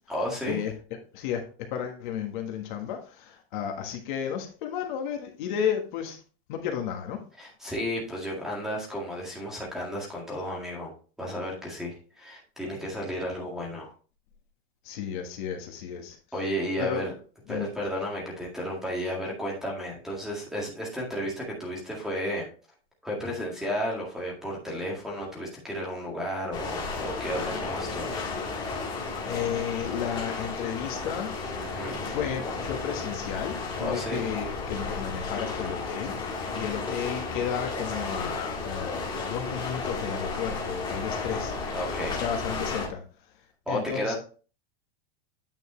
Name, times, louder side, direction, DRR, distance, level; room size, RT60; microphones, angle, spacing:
voice 1, 0.1-0.6 7.4-10.9 11.2-13.9 16.3-17.1 17.5-22.5 23.0-28.2 31.6-32.0 33.8-34.2 41.7-42.2 43.7-44.2, equal, ahead, -3 dB, 1.9 m, -33 dB
voice 2, 1.7-6.2 6.5-7.2 14.8-16.2 16.8-17.0 17.5-17.7 29.2-31.3 32.0-41.5 42.1-43.0 43.7-44.2, left 8 dB, 50° left, 3 dB, 1.5 m, -33 dB
sound 1, 26.5-42.9, left 3 dB, 15° left, 1.6 m, -33 dB
9.1 x 5.3 x 3.1 m, 0.37 s
supercardioid pair, 170°, 31 cm